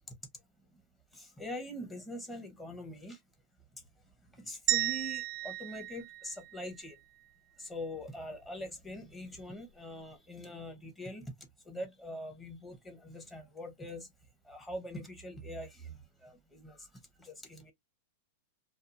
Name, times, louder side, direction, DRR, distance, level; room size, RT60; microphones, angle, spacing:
voice 1, 1.1-3.2 3.7-7.0 7.6-14.1 14.4-17.7, left 1 dB, 10° left, 0.9 m, -44 dB
sound 1, 4.7-6.9, right 17 dB, 50° right, 0.3 m, -34 dB
2.5 x 2.4 x 2.6 m
supercardioid pair, 135°, 0 cm